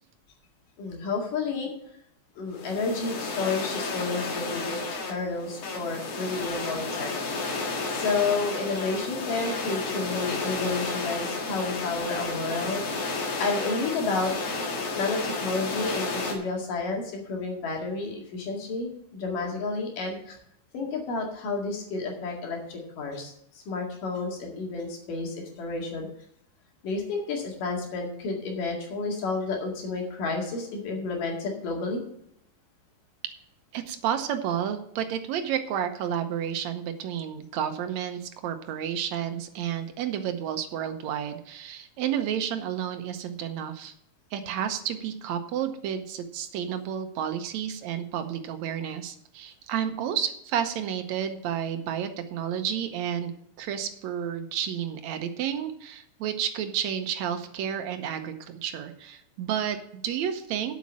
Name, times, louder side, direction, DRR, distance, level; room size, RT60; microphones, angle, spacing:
voice 1, 0.8-1.7 2.4-7.1 7.9-12.8 13.4-14.3 15.0-20.4 20.7-26.1 26.8-32.0, left 3 dB, 75° left, 0 dB, 3.7 m, -31 dB
sound 1, 2.5-16.3, left 3 dB, 55° left, 2.6 m, -32 dB
voice 2, 33.7-43.9 44.3-53.3 53.6-60.8, right 9 dB, 70° right, 8 dB, 1.9 m, -31 dB
8.3 x 7.3 x 7.3 m, 0.73 s
omnidirectional pair, 3.8 m